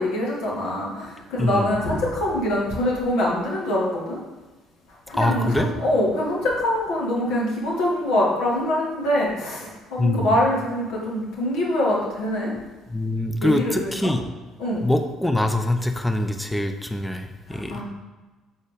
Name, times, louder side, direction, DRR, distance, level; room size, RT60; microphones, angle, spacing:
voice 1, 0.0-4.2 5.1-12.5 13.4-14.1 14.6-14.8 17.5-17.8, left 1 dB, 65° left, -4 dB, 2.0 m, -24 dB
voice 2, 1.4-1.7 5.1-5.7 10.0-10.3 12.9-14.3 14.8-17.8, left 1 dB, 5° left, 6 dB, 0.7 m, -24 dB
7.1 x 4.3 x 5.1 m, 1.2 s
figure-of-eight pair, 50°, 0 cm